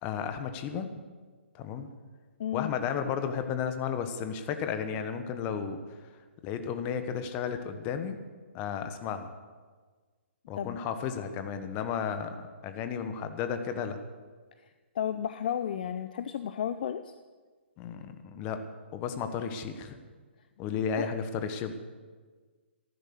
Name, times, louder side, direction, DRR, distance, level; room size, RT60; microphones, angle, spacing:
voice 1, 0.0-0.9 1.5-1.9 2.5-5.8 6.4-8.2 8.5-9.3 10.5-14.0 17.8-18.6 18.9-20.0 20.6-21.7, left 7 dB, 25° left, 8 dB, 1.3 m, -33 dB
voice 2, 2.4-2.7 10.6-10.8 14.9-17.1 21.0-21.1, left 9 dB, 45° left, 11 dB, 0.6 m, -32 dB
14.5 x 12.0 x 6.6 m, 1.5 s
figure-of-eight pair, 130°, 7 cm